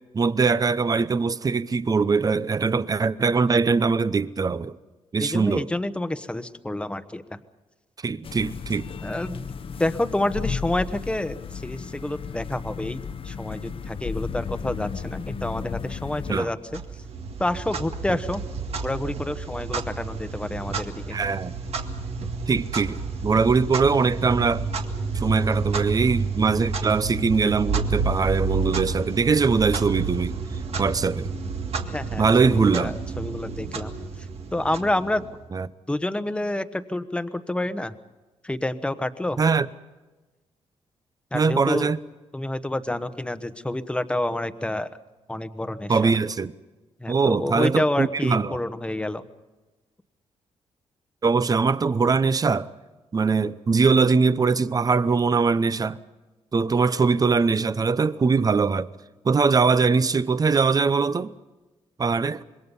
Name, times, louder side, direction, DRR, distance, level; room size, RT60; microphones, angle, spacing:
voice 1, 0.1-4.8 5.1-5.7 8.0-8.9 16.3-16.5 21.1-21.6 22.5-24.6 25.1-30.4 30.8-31.3 32.2-32.9 35.5-35.7 39.4-39.7 41.3-42.0 45.9-46.5 47.1-48.6 51.2-52.7 53.1-56.0 56.5-58.9 59.2-61.3 62.0-62.4, right 4 dB, 30° right, 0.8 m, -22 dB
voice 2, 5.2-7.4 9.0-9.4 9.8-16.8 17.4-18.4 18.7-21.2 30.7-30.8 31.9-33.9 34.5-35.2 35.9-37.9 38.4-39.4 41.3-41.9 42.3-44.9 45.3-46.1 47.0-49.2, left 1 dB, 10° left, 1.1 m, -28 dB
sound 1, 8.2-16.4, left 6 dB, 50° left, 0.9 m, -34 dB
Clock, 16.7-35.4, right 4 dB, 60° right, 1.9 m, -30 dB
26.5 x 22.0 x 5.5 m
cardioid pair, 100°, 12 cm